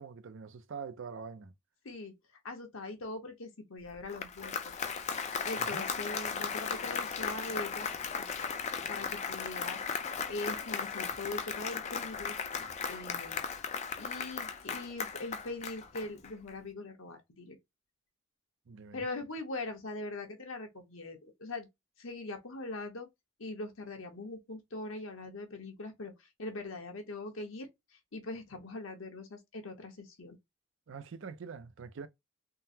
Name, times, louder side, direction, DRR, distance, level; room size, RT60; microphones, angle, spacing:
voice 1, 0.0-1.5 5.6-5.8 18.7-19.1 30.9-32.1, right 5 dB, 60° right, 0.4 m, -44 dB
voice 2, 2.4-4.6 5.1-7.9 8.2-8.3 8.9-9.8 10.3-12.4 12.9-13.4 14.0-17.6 18.9-21.7 22.0-23.1 23.4-26.1 26.4-27.7 28.1-30.4, left 2 dB, 65° left, 1.0 m, -41 dB
Applause, 3.9-16.5, left 6 dB, 30° left, 0.4 m, -36 dB
3.8 x 2.0 x 2.7 m
head